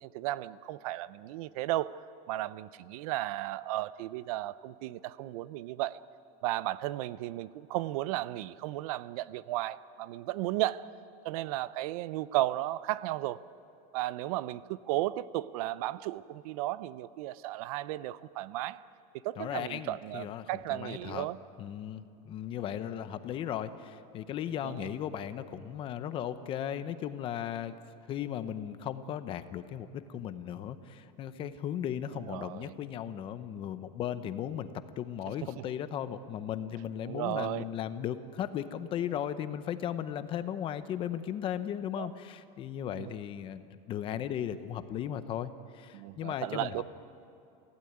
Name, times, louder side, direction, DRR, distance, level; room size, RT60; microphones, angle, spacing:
voice 1, 0.0-2.0 2.3-6.0 6.4-10.9 11.2-13.4 13.9-18.8 19.2-21.4 24.6-24.9 32.3-32.7 35.6-35.7 37.1-37.7 42.0-42.1 43.0-43.1 45.9-46.8, right 15 dB, 65° right, 18 dB, 0.6 m, -34 dB
voice 2, 19.4-21.3 21.6-27.7 28.1-46.8, left 10 dB, 25° left, 12 dB, 0.7 m, -36 dB
24.5 x 16.0 x 9.5 m, 2.7 s
supercardioid pair, 175°, 20 cm